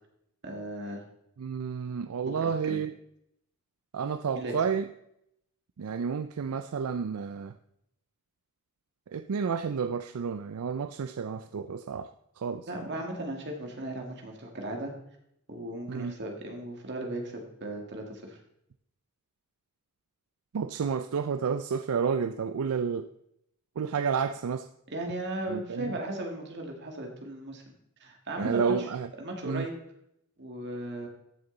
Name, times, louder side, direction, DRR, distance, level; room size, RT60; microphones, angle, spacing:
voice 1, 0.4-1.0 2.3-2.8 4.4-4.5 12.7-14.9 15.5-18.4 24.9-27.6 28.0-28.9 29.2-29.8 30.4-31.1, right 1 dB, 50° right, 2 dB, 2.0 m, -36 dB
voice 2, 1.4-2.9 3.9-4.9 5.8-7.5 9.1-12.1 12.4-12.7 15.9-16.1 20.5-23.1 23.8-24.7 25.5-25.9 28.4-29.1 29.4-29.6, right 6 dB, 75° right, 10 dB, 0.4 m, -30 dB
14.0 x 6.7 x 4.0 m, 0.77 s
head